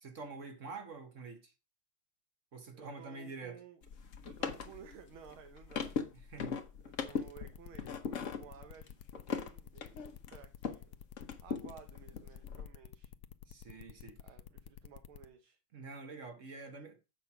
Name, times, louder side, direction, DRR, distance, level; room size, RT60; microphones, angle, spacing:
voice 1, 0.0-1.5 2.5-3.6 6.3-6.6 13.5-14.2 15.7-17.0, right 3 dB, 45° right, 1.2 m, -47 dB
voice 2, 2.7-3.8 4.3-6.1 6.8-10.0 10.3-11.1 11.4-13.1 14.2-15.6, right 7 dB, 80° right, 1.9 m, -55 dB
sound 1, 3.8-10.9 11.2-12.6, left 6 dB, 50° left, 1.0 m, -40 dB
sound 2, 7.1-15.3, left 10 dB, 75° left, 0.9 m, -51 dB
7.4 x 5.6 x 5.9 m
omnidirectional pair, 2.3 m